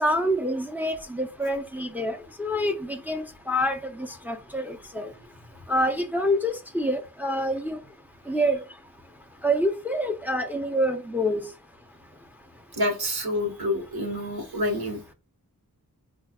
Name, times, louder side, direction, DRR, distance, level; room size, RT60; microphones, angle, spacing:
voice 1, 0.0-5.1 5.7-7.8 8.3-8.6 9.4-11.4, equal, 5° right, 0.5 m, -26 dB
voice 2, 12.7-15.1, left 1 dB, 75° right, 1.1 m, -28 dB
4.4 x 2.3 x 3.5 m
wide cardioid pair, 55°, 38 cm